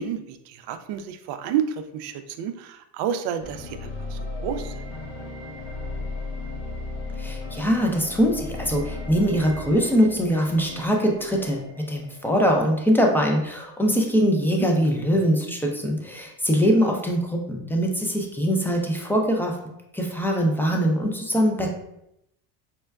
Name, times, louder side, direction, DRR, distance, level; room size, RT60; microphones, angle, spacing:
voice 1, 0.0-4.8 12.5-12.6 14.6-14.7, right 8 dB, 60° right, 9 dB, 0.5 m, -30 dB
sound 1, 3.4-12.5, left 2 dB, 55° left, 0.8 m, -35 dB
voice 2, 7.2-19.6 19.9-21.7, equal, 5° left, 1 dB, 0.4 m, -22 dB
4.4 x 2.1 x 2.3 m, 0.81 s
supercardioid pair, 80°, 48 cm